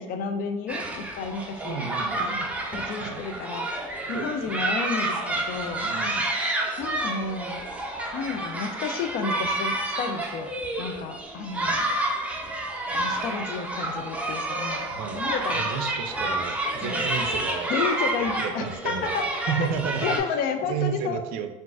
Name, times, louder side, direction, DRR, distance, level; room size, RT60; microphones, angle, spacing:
voice 1, 0.0-1.8 2.1-2.3 2.7-3.7 4.1-5.9 6.8-7.7 8.1-10.5 10.8-11.9 13.0-15.7 16.8-17.2 17.7-19.2 20.0-21.2, left 5 dB, 55° left, 7 dB, 0.4 m, -31 dB
sound 1, 0.7-20.2, right 1 dB, 10° right, 0.5 m, -29 dB
voice 2, 1.6-2.6 3.0-3.2 4.1-4.6 5.8-6.3 14.9-17.7 18.3-19.2 19.5-20.2 20.7-21.5, right 7 dB, 60° right, 8 dB, 0.4 m, -32 dB
3.7 x 2.5 x 2.3 m, 1.0 s
hypercardioid pair, 85°, 18 cm